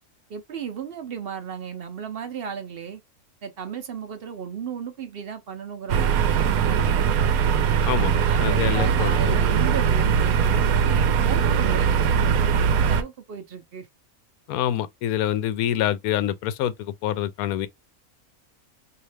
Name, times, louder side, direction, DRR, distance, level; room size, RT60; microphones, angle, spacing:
voice 1, 0.3-3.0 3.4-7.1 7.8-12.0 12.6-13.9, right 7 dB, 55° right, 0.7 m, -35 dB
sound 1, 5.9-13.0, right 7 dB, 80° right, 1.1 m, -21 dB
voice 2, 7.9-9.4 14.5-17.7, left 11 dB, 80° left, 1.0 m, -26 dB
3.2 x 2.8 x 3.2 m
omnidirectional pair, 1.5 m